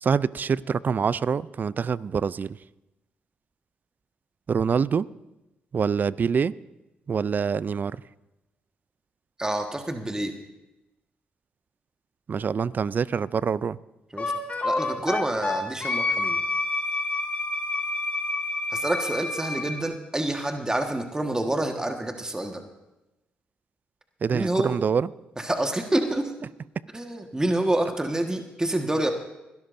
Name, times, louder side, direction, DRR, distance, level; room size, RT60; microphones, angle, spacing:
voice 1, 0.0-2.6 4.5-5.1 5.7-6.5 7.1-7.9 12.3-13.8 24.2-25.1, right 6 dB, 45° right, 0.4 m, -25 dB
voice 2, 9.4-10.3 14.1-14.3 14.6-16.4 18.7-22.6 24.3-24.7 25.4-26.2 26.9-29.1, right 1 dB, 15° right, 1.5 m, -27 dB
Wind instrument woodwind instrument, 14.2-19.8, left 2 dB, 35° left, 2.1 m, -28 dB
22.0 x 12.5 x 2.6 m
hypercardioid pair, 50°, 4 cm